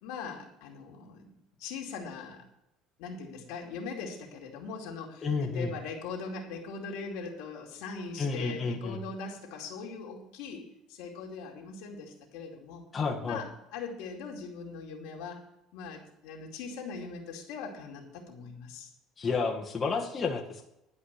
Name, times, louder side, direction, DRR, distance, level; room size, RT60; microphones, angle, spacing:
voice 1, 0.0-1.3 1.6-2.4 3.0-12.8 13.2-15.4 15.7-18.9, left 4 dB, 80° left, 0 dB, 2.6 m, -41 dB
voice 2, 5.2-5.7 8.2-9.0 12.9-13.4 19.2-20.7, left 4 dB, 30° left, -1 dB, 1.7 m, -31 dB
11.0 x 5.1 x 8.2 m, 0.85 s
cardioid pair, 115°, 0 cm